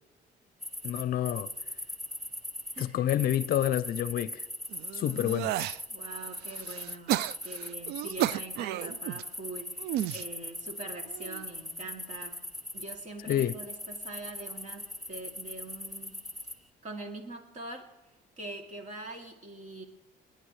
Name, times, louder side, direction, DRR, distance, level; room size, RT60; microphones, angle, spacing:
sound 1, 0.6-12.9 13.3-16.5, left 1 dB, ahead, 0.9 m, -40 dB
voice 1, 0.8-1.5 2.8-4.3 4.9-5.5 13.3-13.5, left 11 dB, 60° left, 0.5 m, -28 dB
voice 2, 2.7-3.1 5.9-12.4 12.7-16.2 16.8-17.9 18.4-19.8, right 2 dB, 45° right, 2.8 m, -43 dB
sound 2, 4.7-5.8 6.3-9.2 9.8-10.2 11.1-11.4, right 13 dB, 75° right, 0.4 m, -33 dB
29.5 x 10.0 x 3.2 m
cardioid pair, 110°, 17 cm